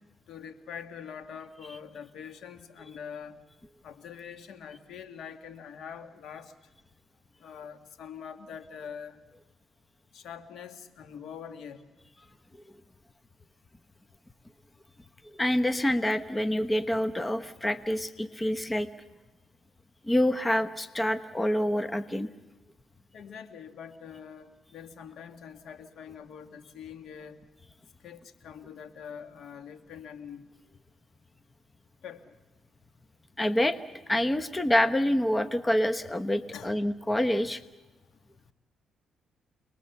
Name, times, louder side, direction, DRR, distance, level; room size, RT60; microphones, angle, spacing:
voice 1, 0.3-3.4 3.8-6.5 7.4-9.2 10.1-11.8 23.1-27.4 28.0-30.5 32.0-32.3 36.5-36.8, left 7 dB, 70° left, 9 dB, 1.9 m, -44 dB
voice 2, 15.2-18.9 20.0-22.3 33.4-33.8 34.1-37.6, left 1 dB, 15° left, 11 dB, 1.0 m, -27 dB
29.5 x 20.0 x 7.1 m, 1.1 s
cardioid pair, 90°, 0 cm